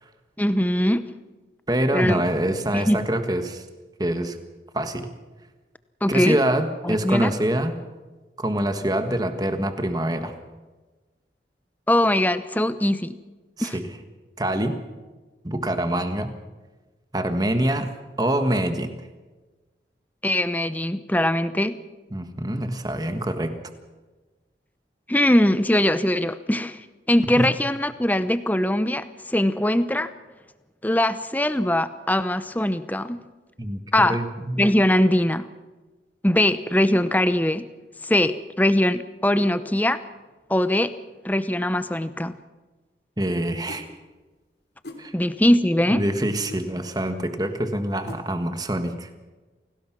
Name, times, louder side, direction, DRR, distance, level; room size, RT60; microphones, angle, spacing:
voice 1, 0.4-1.1 1.9-2.2 2.7-3.0 6.0-6.4 6.8-7.3 11.9-13.2 13.6-13.7 20.2-21.8 25.1-26.8 27.1-30.1 30.8-33.2 33.9-34.2 34.6-35.5 36.2-37.7 38.0-40.0 40.5-40.9 41.2-42.3 45.1-46.0, left 1 dB, 10° left, 12 dB, 0.8 m, -21 dB
voice 2, 1.7-3.6 4.0-4.4 4.7-5.1 6.1-7.8 8.4-10.3 13.6-13.9 14.4-14.8 15.4-16.3 17.1-17.9 18.2-19.0 22.1-23.5 27.4-27.5 33.6-34.7 43.2-43.9 45.0-45.1 45.9-49.1, right 1 dB, 20° right, 8 dB, 1.5 m, -25 dB
sound 1, 43.7-43.9 44.8-45.1 46.5-46.7 48.1-48.2, left 2 dB, 65° left, 3.1 m, -40 dB
28.0 x 18.5 x 6.1 m, 1.2 s
head